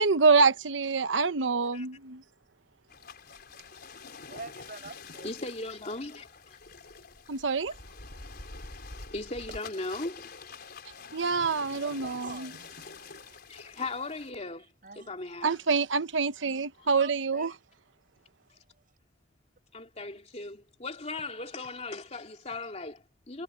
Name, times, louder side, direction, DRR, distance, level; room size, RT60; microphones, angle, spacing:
voice 1, 0.0-2.2 7.3-7.7 11.1-12.5 15.4-17.5, right 4 dB, 75° right, 1.0 m, -26 dB
sound 1, 2.9-14.3, left 4 dB, 55° left, 4.7 m, -46 dB
voice 2, 4.3-5.3 10.8-11.0 11.8-12.9 14.8-15.2 17.0-17.6 18.7-18.8, right 3 dB, 45° right, 6.9 m, -46 dB
voice 3, 5.2-6.6 7.6-7.7 9.1-10.3 13.5-14.6 15.0-15.6 16.8-16.9 19.7-23.4, left 2 dB, 35° left, 2.7 m, -38 dB
head